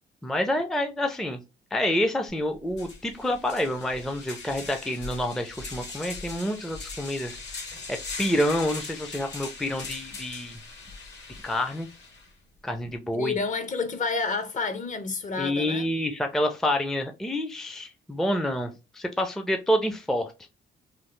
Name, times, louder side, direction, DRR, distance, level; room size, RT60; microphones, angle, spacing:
voice 1, 0.2-1.4 1.7-7.4 7.9-10.5 11.4-11.9 12.6-13.3 15.4-20.3, left 1 dB, ahead, 0.4 m, -28 dB
sound 1, 2.3-2.4 2.7-12.3, left 4 dB, 60° left, 1.6 m, -40 dB
voice 2, 13.1-15.9, left 4 dB, 40° left, 0.7 m, -29 dB
3.1 x 2.0 x 3.0 m
cardioid pair, 90°, 20 cm